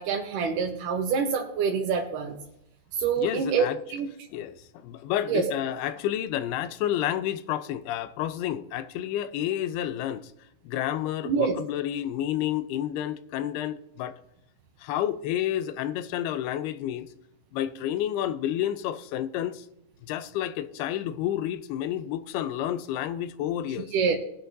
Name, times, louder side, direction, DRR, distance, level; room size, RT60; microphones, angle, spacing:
voice 1, 0.0-2.4 2.9-4.1 5.3-5.5 11.2-11.6 23.9-24.2, right 5 dB, 70° right, 2.2 m, -26 dB
voice 2, 3.2-3.8 4.3-10.3 10.6-14.2 14.8-17.1 17.5-19.7 20.0-23.9, left 11 dB, 85° left, 2.6 m, -30 dB
20.0 x 10.0 x 2.7 m
omnidirectional pair, 4.4 m